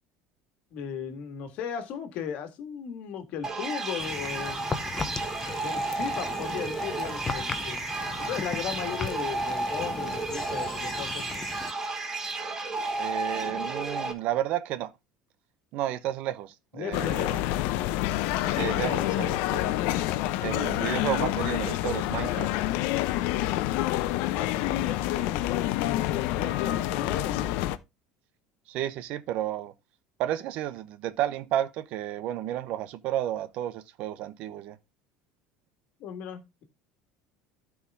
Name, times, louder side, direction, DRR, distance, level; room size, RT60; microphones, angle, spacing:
voice 1, 0.7-4.6 5.6-7.8 8.2-11.2 16.7-17.4 24.3-27.5 36.0-36.6, left 8 dB, 50° left, 1.8 m, -36 dB
sound 1, 3.4-14.1, right 3 dB, 15° right, 1.6 m, -32 dB
sound 2, 4.0-11.7, left 4 dB, 15° left, 0.8 m, -37 dB
voice 2, 12.9-14.9 15.7-17.4 18.4-19.8 20.4-22.5 28.7-29.7 30.2-34.8, right 12 dB, 50° right, 0.8 m, -32 dB
sound 3, 16.9-27.8, left 15 dB, 65° left, 0.8 m, -28 dB
13.0 x 4.8 x 3.6 m
cardioid pair, 160°, 3 cm